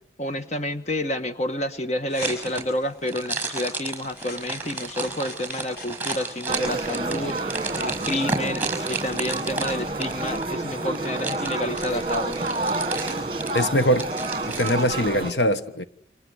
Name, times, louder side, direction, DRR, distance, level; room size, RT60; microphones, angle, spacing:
voice 1, 0.2-12.4, left 1 dB, 40° left, 1.6 m, -29 dB
sound 1, 2.1-3.2 4.1-6.2, left 1 dB, 60° left, 5.3 m, -42 dB
sound 2, 2.2-14.8, right 4 dB, 10° right, 5.6 m, -33 dB
sound 3, 6.5-15.3, right 2 dB, 30° right, 1.9 m, -29 dB
voice 2, 13.5-14.1 14.6-15.8, equal, 75° left, 1.3 m, -22 dB
29.5 x 25.5 x 8.0 m
head